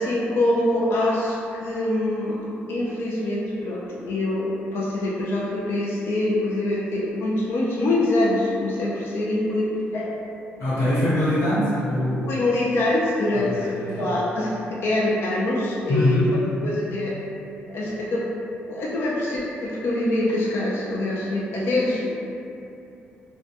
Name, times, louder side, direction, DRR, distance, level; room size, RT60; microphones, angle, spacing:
voice 1, 0.0-10.2 12.3-16.2 16.6-17.2 17.7-18.3 18.7-22.0, left 1 dB, 60° left, -5 dB, 0.3 m, -24 dB
voice 2, 10.6-12.3 13.3-14.1 15.9-16.3, left 1 dB, 85° left, -13 dB, 1.2 m, -23 dB
2.1 x 2.1 x 2.7 m, 2.7 s
cardioid pair, 130°, 4 cm